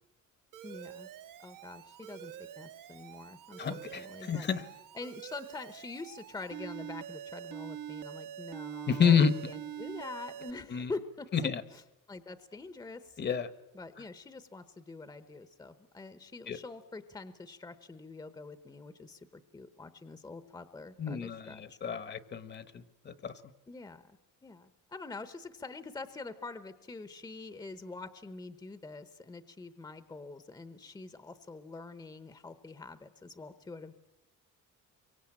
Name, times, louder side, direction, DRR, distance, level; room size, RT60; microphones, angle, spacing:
Alarm, 0.5-10.5, right 11 dB, 85° right, 1.6 m, -45 dB
voice 1, 0.6-1.1 1.4-4.5 4.9-11.8 12.1-13.2 13.7-21.8 23.7-24.2 24.4-33.9, left 3 dB, 15° left, 12 dB, 0.9 m, -45 dB
voice 2, 3.6-4.6 8.9-9.3 10.7-10.9 11.3-11.6 13.2-13.5 16.5-16.6 21.0-23.3, left 6 dB, 35° left, 14 dB, 1.1 m, -29 dB
28.0 x 24.0 x 8.8 m, 0.94 s
cardioid pair, 165°, 32 cm